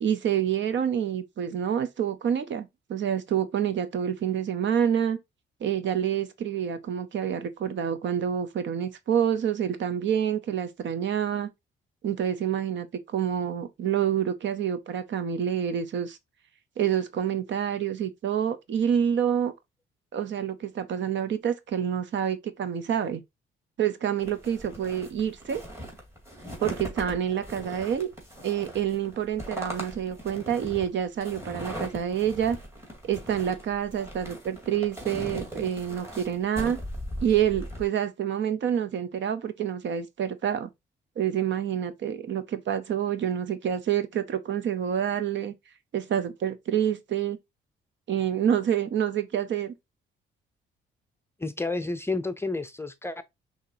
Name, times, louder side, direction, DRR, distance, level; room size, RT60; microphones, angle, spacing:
voice 1, 0.0-5.2 5.6-11.5 12.0-16.2 16.8-19.5 20.1-23.2 23.8-25.6 26.6-28.1 28.4-32.6 33.0-36.8 37.2-40.7 41.2-45.5 45.9-47.4 48.1-49.7, right 9 dB, 60° right, 0.7 m, -27 dB
sound 1, 24.2-37.8, equal, 10° right, 2.2 m, -39 dB
voice 2, 51.4-53.2, left 3 dB, 10° left, 0.5 m, -30 dB
5.7 x 2.9 x 2.7 m
cardioid pair, 90°, 21 cm